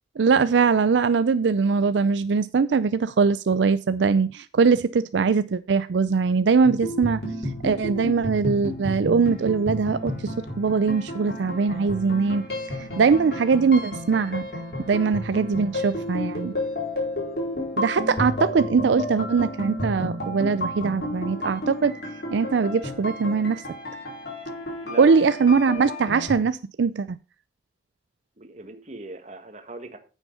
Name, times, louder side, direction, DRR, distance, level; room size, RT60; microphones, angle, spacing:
voice 1, 0.2-14.4 14.9-16.5 17.8-22.0 22.3-23.6 25.0-27.2, right 5 dB, 80° right, 0.4 m, -22 dB
sound 1, 6.6-26.4, left 1 dB, 60° left, 4.7 m, -31 dB
voice 2, 24.8-25.3 28.4-30.0, right 2 dB, 40° right, 1.6 m, -39 dB
9.2 x 7.2 x 5.4 m
head